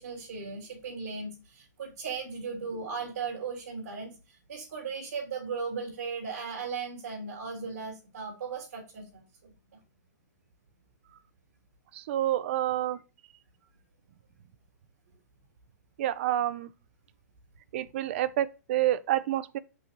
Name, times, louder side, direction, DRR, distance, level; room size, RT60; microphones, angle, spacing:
voice 1, 0.0-9.5, right 5 dB, 70° right, 3.2 m, -37 dB
voice 2, 11.9-13.0 16.0-16.7 17.7-19.6, right 13 dB, 40° right, 0.5 m, -28 dB
6.1 x 6.1 x 3.0 m
hypercardioid pair, 160°, 9 cm